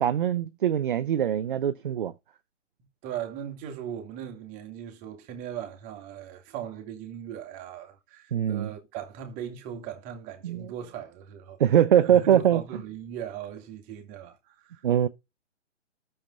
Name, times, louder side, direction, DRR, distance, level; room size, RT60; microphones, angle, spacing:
voice 1, 0.0-2.1 8.3-8.7 10.4-10.7 11.6-12.6 14.8-15.1, right 10 dB, 45° right, 0.8 m, -22 dB
voice 2, 3.0-11.6 12.0-14.8, right 9 dB, 20° right, 2.2 m, -39 dB
13.0 x 7.2 x 4.0 m
figure-of-eight pair, 130°, 36 cm